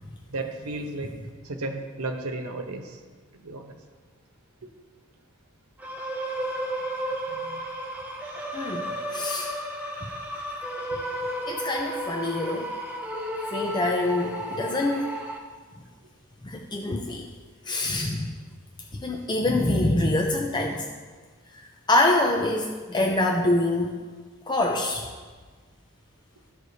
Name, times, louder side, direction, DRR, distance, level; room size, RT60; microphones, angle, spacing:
voice 1, 0.3-1.1 1.4-3.0 3.4-3.8, right 2 dB, 90° right, 4 dB, 0.9 m, -33 dB
sound 1, 5.8-15.4, equal, 5° right, 0.9 m, -33 dB
voice 2, 8.5-9.5 11.5-12.7 13.5-15.1 16.4-17.3 17.6-18.4 18.9-20.9 21.5-24.0 24.5-25.1, left 2 dB, 20° left, 1 dB, 0.5 m, -25 dB
13.5 x 4.7 x 2.7 m, 1.4 s
head